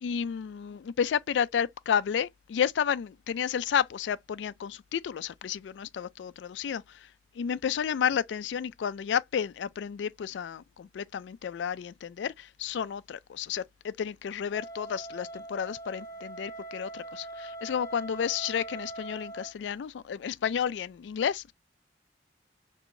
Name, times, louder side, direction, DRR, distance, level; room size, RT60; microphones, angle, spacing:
voice 1, 0.0-7.1 7.4-21.5, left 8 dB, 80° left, 0.3 m, -31 dB
Wind instrument woodwind instrument, 14.5-19.5, right 2 dB, 20° left, 0.7 m, -42 dB
4.6 x 3.0 x 2.5 m
head